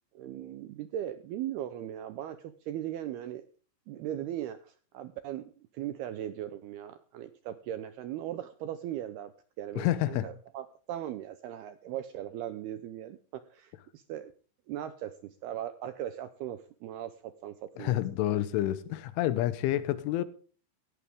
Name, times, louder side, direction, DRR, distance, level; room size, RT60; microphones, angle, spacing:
voice 1, 0.2-3.4 3.9-5.4 5.7-9.3 9.6-14.3 14.7-15.1 15.4-18.0, right 11 dB, 75° right, 2.4 m, -38 dB
voice 2, 9.8-10.3 17.8-20.3, left 14 dB, 90° left, 3.5 m, -29 dB
17.5 x 16.5 x 3.6 m
omnidirectional pair, 5.4 m